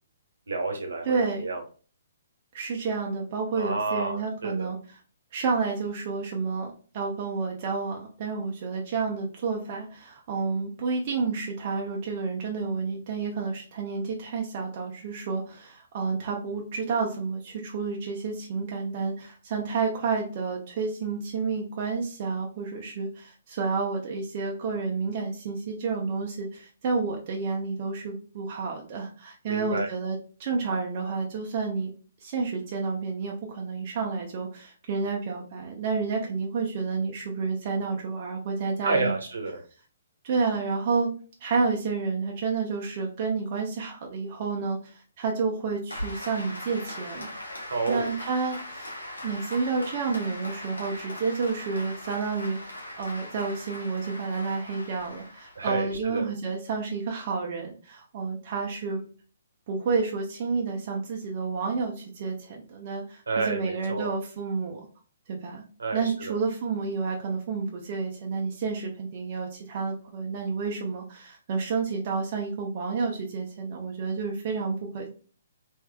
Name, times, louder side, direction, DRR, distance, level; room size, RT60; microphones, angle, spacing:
voice 1, 0.5-1.6 3.5-4.7 29.5-29.9 38.8-39.6 47.7-48.1 55.6-56.3 63.3-64.1 65.8-66.4, right 3 dB, 75° right, 3 dB, 1.0 m, -30 dB
voice 2, 1.0-1.5 2.5-5.0 5.3-31.9 32.2-39.1 40.2-41.1 41.4-47.3 47.9-48.9 49.2-59.0 59.7-64.9 65.3-65.6 65.9-75.1, right 4 dB, 45° right, 0 dB, 0.7 m, -30 dB
Applause, 45.9-56.0, left 1 dB, 90° left, 1.1 m, -40 dB
3.3 x 3.1 x 2.2 m, 0.38 s
figure-of-eight pair, 130°, 0 cm